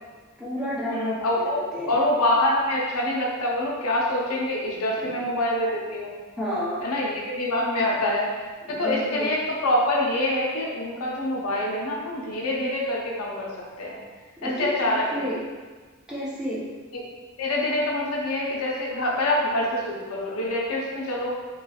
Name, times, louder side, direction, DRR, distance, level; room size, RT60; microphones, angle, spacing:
voice 1, 0.4-1.4 1.7-2.0 5.0-5.3 6.4-6.9 8.7-9.3 14.4-15.4 16.1-16.7, equal, 5° right, -8 dB, 0.6 m, -31 dB
voice 2, 0.9-1.6 1.9-6.1 6.8-8.3 8.7-14.0 14.4-15.3 16.9-17.0 17.4-21.3, left 1 dB, 75° left, -3 dB, 0.6 m, -25 dB
3.1 x 2.9 x 2.3 m, 1.4 s
head